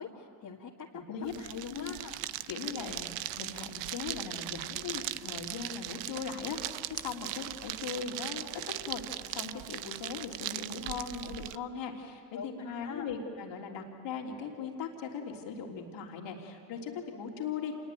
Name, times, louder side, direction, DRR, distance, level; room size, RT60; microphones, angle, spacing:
voice 1, 0.0-2.2 12.3-13.1, left 6 dB, 50° left, -3 dB, 2.1 m, -43 dB
sound 1, 1.2-11.6, right 15 dB, 85° right, 0.8 m, -39 dB
voice 2, 2.5-3.1 3.4-8.5 8.8-17.8, left 6 dB, 80° left, 0 dB, 3.3 m, -39 dB
27.0 x 21.0 x 9.1 m, 2.2 s
supercardioid pair, 75°, 43 cm